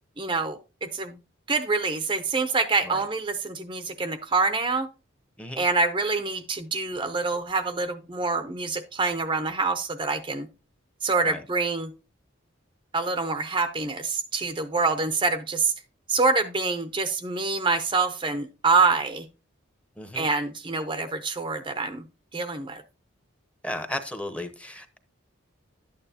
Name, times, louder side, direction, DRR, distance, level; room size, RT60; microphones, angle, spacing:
voice 1, 0.2-1.2 1.5-4.9 5.6-10.5 11.0-11.9 12.9-15.7 16.1-19.3 20.1-22.0 22.3-22.8, right 4 dB, 25° right, 0.6 m, -26 dB
voice 2, 20.0-20.3 23.6-25.0, left 1 dB, 5° left, 0.8 m, -35 dB
11.5 x 9.0 x 2.8 m
head